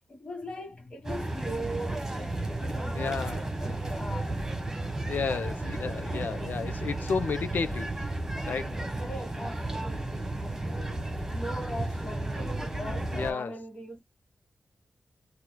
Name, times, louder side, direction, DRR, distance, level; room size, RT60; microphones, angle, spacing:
voice 1, 0.1-4.4 9.0-14.0, equal, 35° left, 1.4 m, -40 dB
sound 1, 1.0-13.3, right 2 dB, 15° right, 1.5 m, -33 dB
voice 2, 2.9-3.8 5.1-8.0 8.4-8.8 13.1-13.6, left 5 dB, 90° left, 0.6 m, -32 dB
4.5 x 2.3 x 2.2 m
wide cardioid pair, 165°, 3 cm